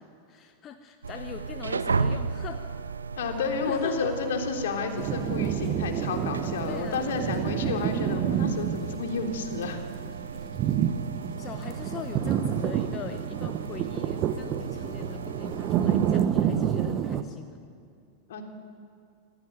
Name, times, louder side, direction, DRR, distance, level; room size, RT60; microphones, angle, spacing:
voice 1, 0.3-2.6 3.7-4.1 6.7-7.3 10.0-10.1 11.4-17.6, left 8 dB, 30° left, 7 dB, 1.1 m, -41 dB
sound 1, 1.0-16.2, right 5 dB, 75° right, 0.7 m, -35 dB
voice 2, 3.2-9.8 18.3-18.4, left 5 dB, 60° left, 3 dB, 3.3 m, -31 dB
sound 2, 5.0-17.2, right 9 dB, 35° right, 1.2 m, -29 dB
26.5 x 17.5 x 9.4 m, 2.4 s
figure-of-eight pair, 90°, 0 cm